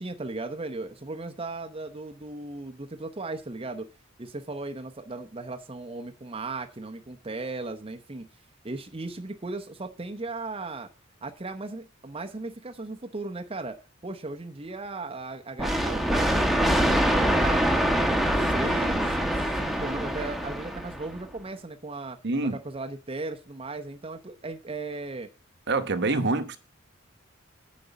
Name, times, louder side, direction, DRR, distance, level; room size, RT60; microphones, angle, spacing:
voice 1, 0.0-3.9 4.2-8.3 8.6-10.9 11.2-13.8 14.0-16.5 16.9-17.7 18.1-22.2 22.5-25.3, right 3 dB, 30° right, 0.8 m, -37 dB
sound 1, 15.6-21.2, equal, ahead, 1.2 m, -24 dB
voice 2, 22.2-22.6 25.7-26.6, right 3 dB, 55° right, 1.0 m, -25 dB
9.2 x 5.2 x 8.0 m
head